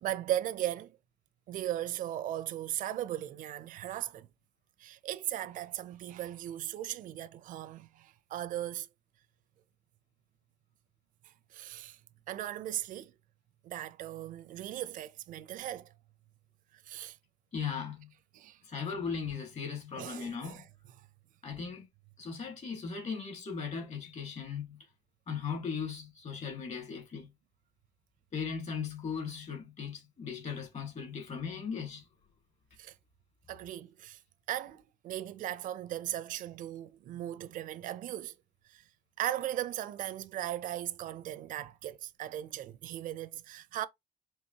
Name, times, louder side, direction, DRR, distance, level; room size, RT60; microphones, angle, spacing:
voice 1, 0.0-1.0 1.5-4.3 4.8-8.9 11.2-12.0 12.3-13.1 13.6-15.9 16.7-17.2 18.3-18.6 20.0-20.7 21.0-21.1 32.8-32.9 33.5-34.2 34.5-38.3 38.7-38.8 39.2-43.9, right 12 dB, 65° right, 0.5 m, -37 dB
voice 2, 17.5-18.1 18.6-20.6 21.4-21.9 22.2-24.8 25.3-27.3 28.3-32.0, left 6 dB, 50° left, 1.7 m, -38 dB
4.5 x 2.9 x 2.8 m
cardioid pair, 110°, 15 cm